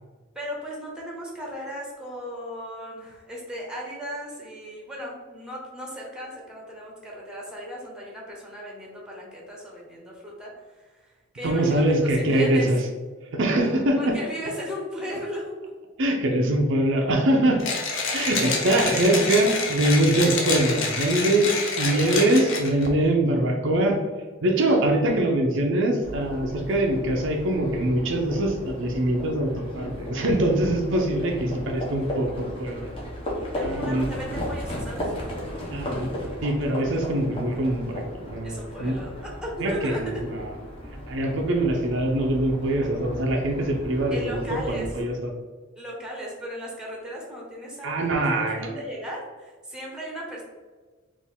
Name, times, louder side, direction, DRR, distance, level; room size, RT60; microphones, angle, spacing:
voice 1, 0.3-12.8 14.0-15.6 18.3-19.1 21.8-22.5 33.5-35.1 38.4-40.2 44.1-44.9 45.8-50.4, equal, 5° right, -2 dB, 0.9 m, -36 dB
voice 2, 11.4-12.8 13.3-14.2 16.0-17.6 18.1-21.5 21.8-24.0 24.4-32.9 33.6-34.1 35.7-36.1 36.4-39.0 39.6-40.6 41.1-45.3 47.8-48.7, right 1 dB, 65° right, 2 dB, 0.6 m, -23 dB
Mechanisms, 17.6-22.9, left 4 dB, 65° left, 0.8 m, -28 dB
Livestock farm animals working animals, 26.0-45.0, equal, 25° left, 1.0 m, -35 dB
4.4 x 2.6 x 3.5 m, 1.4 s
head